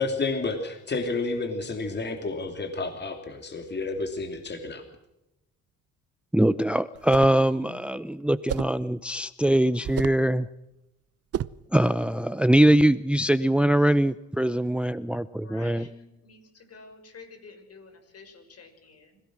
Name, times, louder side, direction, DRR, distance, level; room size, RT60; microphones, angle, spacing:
voice 1, 0.0-4.8, left 3 dB, 35° left, 6 dB, 3.0 m, -30 dB
voice 2, 6.3-10.5 11.7-15.8, right 1 dB, 5° right, 15 dB, 0.7 m, -22 dB
sound 1, 7.0-7.4 8.5-8.8 9.8-10.3 11.3-11.7, right 10 dB, 55° right, 0.7 m, -32 dB
voice 3, 15.4-19.2, left 4 dB, 55° left, 7 dB, 6.3 m, -50 dB
26.0 x 17.0 x 6.2 m, 0.90 s
cardioid pair, 90°, 30 cm